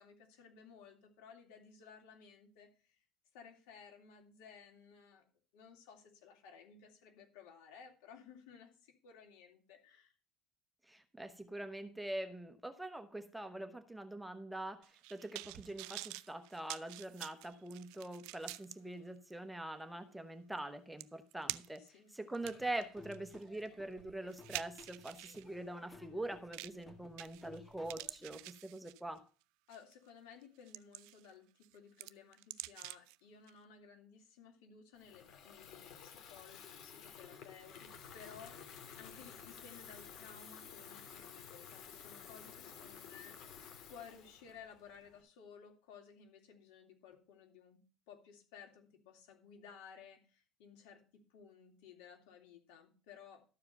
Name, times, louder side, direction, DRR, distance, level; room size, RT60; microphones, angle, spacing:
voice 1, 0.0-3.0 3.3-5.3 5.5-10.1 21.8-22.1 29.7-47.8 48.1-53.4, left 6 dB, 85° left, 2 dB, 3.1 m, -57 dB
voice 2, 10.9-14.8 15.1-21.8 22.1-29.2, right 1 dB, 5° right, 9 dB, 0.9 m, -44 dB
sound 1, 14.8-18.8 19.3-19.4 20.6-20.7 21.0-21.9 22.3-25.4 26.5-26.8 27.2-27.6 27.9-29.2 29.7-29.9 30.4-31.3 31.6-33.2 33.5-33.6, right 20 dB, 80° right, 0.4 m, -47 dB
Laughter / Drum, 22.4-28.4, left 2 dB, 15° left, 1.9 m, -59 dB
Water tap faucet / Fill (with liquid), 35.0-45.2, left 7 dB, 55° left, 2.1 m, -53 dB
13.0 x 4.8 x 6.8 m, 0.36 s
cardioid pair, 140°, 0 cm